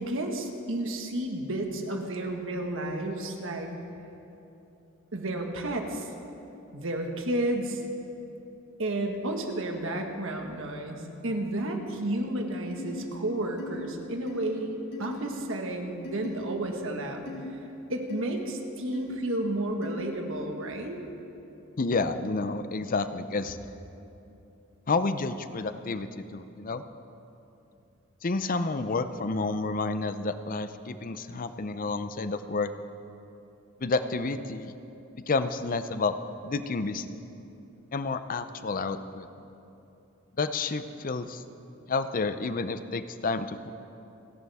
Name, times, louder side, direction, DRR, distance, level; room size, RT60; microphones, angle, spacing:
voice 1, 0.0-3.7 5.1-6.1 6.7-7.8 8.8-17.2 17.9-21.0, right 1 dB, 60° right, 3 dB, 1.6 m, -32 dB
sound 1, 12.8-12.9 13.6-13.7 14.3-14.4 14.9-15.1 16.0-16.3 17.3-17.4 18.1-18.2 18.9-19.0 19.8-20.0, left 2 dB, 55° left, 4.2 m, -39 dB
voice 2, 21.8-23.6 24.9-26.8 28.2-32.7 33.8-34.7 35.3-36.1 36.4-37.2 37.9-39.3 40.4-41.4 41.9-43.7, left 3 dB, 40° left, 11 dB, 0.6 m, -30 dB
29.5 x 11.0 x 3.6 m, 2.9 s
head